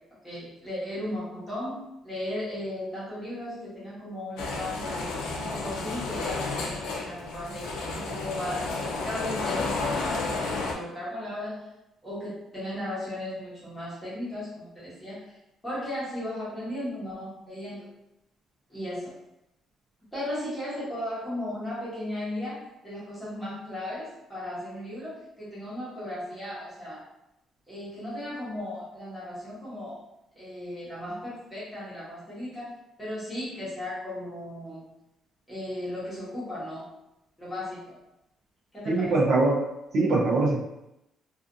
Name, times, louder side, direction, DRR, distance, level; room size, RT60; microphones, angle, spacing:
voice 1, 0.2-5.1 5.4-7.7 8.0-11.7 12.0-15.4 15.6-17.9 18.7-19.1 20.1-27.0 27.7-30.0 30.3-34.8 35.5-36.9 37.4-38.0 38.7-39.1, left 1 dB, 5° left, -11 dB, 1.1 m, -36 dB
sound 1, 4.4-10.7, left 3 dB, 90° left, 0.4 m, -31 dB
voice 2, 38.9-39.6 39.9-40.6, right 2 dB, 50° right, -5 dB, 0.5 m, -22 dB
2.4 x 2.4 x 2.5 m, 0.87 s
cardioid pair, 180°, 0 cm